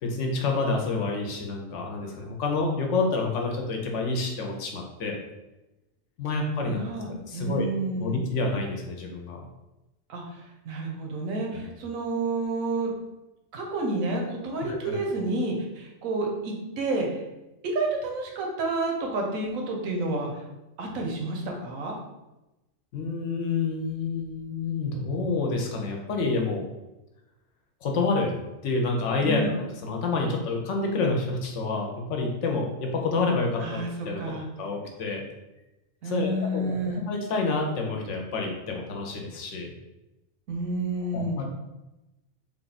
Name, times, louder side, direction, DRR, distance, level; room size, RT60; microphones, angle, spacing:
voice 1, 0.0-5.2 6.2-6.8 7.1-7.7 7.9-9.4 14.7-15.0 22.9-26.7 27.8-28.4 28.6-34.2 34.6-35.2 36.0-36.8 37.0-39.7 41.1-41.4, left 3 dB, 70° left, 1 dB, 0.9 m, -28 dB
voice 2, 6.3-8.2 10.1-10.2 10.7-12.9 13.5-17.2 17.7-20.3 20.8-21.9 29.2-29.5 33.6-34.5 36.0-37.0 40.5-41.4, right 2 dB, 85° right, 1 dB, 1.2 m, -30 dB
3.5 x 2.4 x 4.0 m, 1.0 s
omnidirectional pair, 1.4 m